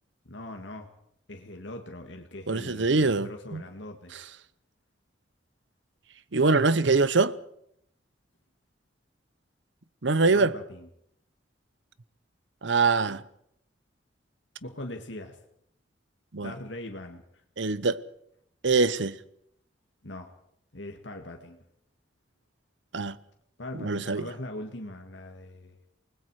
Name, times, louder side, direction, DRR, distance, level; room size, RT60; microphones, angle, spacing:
voice 1, 0.3-0.9 1.3-4.1 10.3-10.9 14.6-15.4 16.4-17.4 20.0-20.3 20.7-21.6 23.6-25.8, left 1 dB, 70° left, 1.9 m, -41 dB
voice 2, 2.5-3.6 6.3-7.3 10.0-10.5 12.6-13.2 16.3-16.5 17.6-18.0 18.6-19.2 22.9-23.2 23.8-24.2, right 3 dB, 70° right, 0.9 m, -23 dB
28.5 x 20.0 x 4.9 m
head